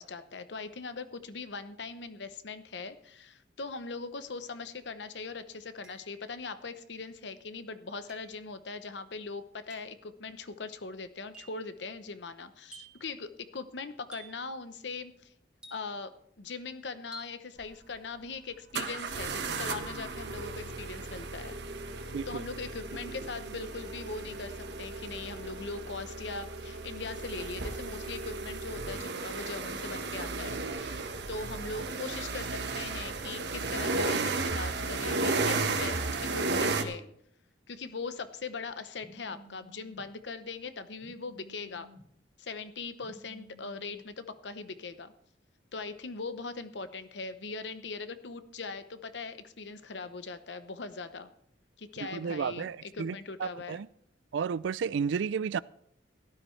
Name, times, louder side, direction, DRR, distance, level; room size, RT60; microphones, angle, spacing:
voice 1, 0.0-15.3 15.7-21.5 22.3-37.0 37.7-41.9 42.4-45.1 45.7-51.3 51.8-53.8, left 4 dB, 70° left, 0.8 m, -40 dB
sound 1, 4.7-4.8 5.8-6.4 8.1-8.4 9.7-10.0 11.3-11.7 12.7-13.1 14.1-14.5 15.6-16.2 17.1-17.5, right 1 dB, 5° right, 1.9 m, -51 dB
sound 2, 17.6-17.7 18.7-36.8, right 3 dB, 65° right, 1.2 m, -34 dB
voice 2, 22.1-22.4 52.1-53.9 54.3-55.6, right 6 dB, 85° right, 0.4 m, -32 dB
Telephone, 39.0-40.0 41.0-42.0 43.0-44.0, equal, 30° right, 2.0 m, -54 dB
17.0 x 12.0 x 3.3 m
head